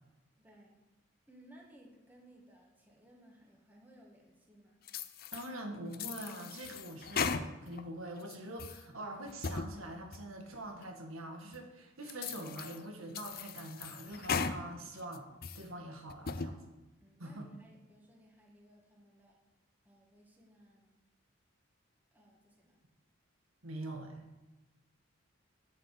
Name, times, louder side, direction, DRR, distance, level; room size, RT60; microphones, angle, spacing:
voice 1, 0.4-0.8 1.3-4.8 17.0-19.4 19.8-20.9 22.1-22.8, equal, 10° right, -2 dB, 1.7 m, -60 dB
sound 1, 4.9-5.5 5.9-7.8 8.2-8.8 9.3-9.7 10.1-10.2 10.8-10.9 11.5-11.6 12.1-12.8 13.1-14.6 15.0-15.6 16.1-16.5, left 5 dB, 45° left, 0.6 m, -38 dB
voice 2, 5.3-15.3 15.5-16.6 17.2-17.4 23.6-24.3, right 1 dB, 85° right, 3 dB, 1.9 m, -44 dB
8.9 x 7.9 x 7.7 m, 1.1 s
head